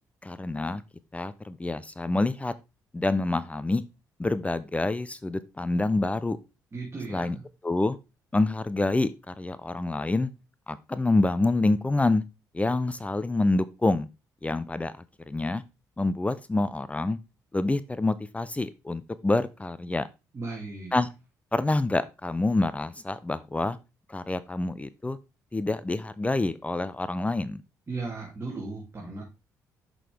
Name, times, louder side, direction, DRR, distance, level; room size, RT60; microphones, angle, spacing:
voice 1, 0.2-0.8 1.1-2.5 2.9-3.8 4.2-6.4 7.1-7.4 7.6-8.0 8.3-10.3 10.7-12.2 12.5-14.1 14.4-14.9 15.3-15.6 16.0-17.2 17.5-20.1 20.9-21.1 21.5-23.8 24.1-25.2 25.5-27.6, left 2 dB, 15° left, 15 dB, 0.6 m, -27 dB
voice 2, 6.7-7.4 20.3-21.0 27.9-29.2, right 3 dB, 35° right, -3 dB, 2.7 m, -36 dB
6.5 x 6.1 x 3.4 m, 0.27 s
supercardioid pair, 55°, 8 cm